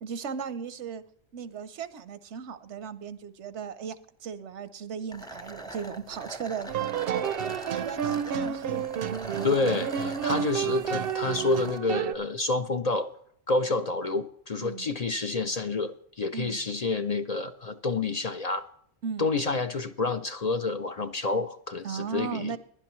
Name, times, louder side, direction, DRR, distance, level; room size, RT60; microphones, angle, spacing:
voice 1, 0.0-1.0 1.3-4.0 4.2-6.7 7.1-7.3 7.7-8.8 9.1-9.2 14.6-14.9 16.3-16.6 19.0-19.3 21.8-22.6, right 7 dB, 85° right, 14 dB, 1.1 m, -36 dB
sound 1, 5.1-11.8, right 2 dB, 5° left, 0.7 m, -42 dB
sound 2, 6.7-12.1, right 8 dB, 65° right, 0.7 m, -30 dB
voice 2, 9.4-13.1 13.5-18.7 19.2-22.6, left 3 dB, 45° left, 8 dB, 0.5 m, -28 dB
16.0 x 11.0 x 3.1 m, 0.65 s
omnidirectional pair, 1.1 m